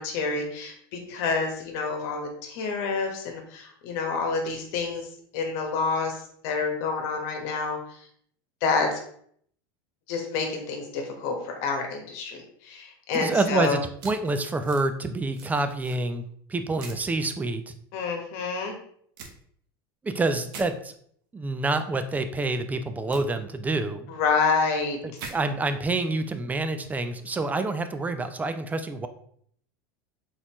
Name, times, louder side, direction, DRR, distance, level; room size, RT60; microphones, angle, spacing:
voice 1, 0.0-5.1 5.3-8.0 8.6-9.0 10.1-13.8 17.9-18.7 24.1-25.0, left 4 dB, 65° left, 3 dB, 1.2 m, -28 dB
voice 2, 13.1-17.8 20.0-20.9 21.3-24.1 25.0-29.1, right 2 dB, 15° right, 9 dB, 0.5 m, -27 dB
sound 1, 14.0-14.9 15.3-16.0 16.8-17.1 19.2-19.3 20.5-20.7 23.1-23.2 25.2-25.4, right 5 dB, 75° right, 0.9 m, -41 dB
4.2 x 4.0 x 3.0 m, 0.62 s
supercardioid pair, 110°, 12 cm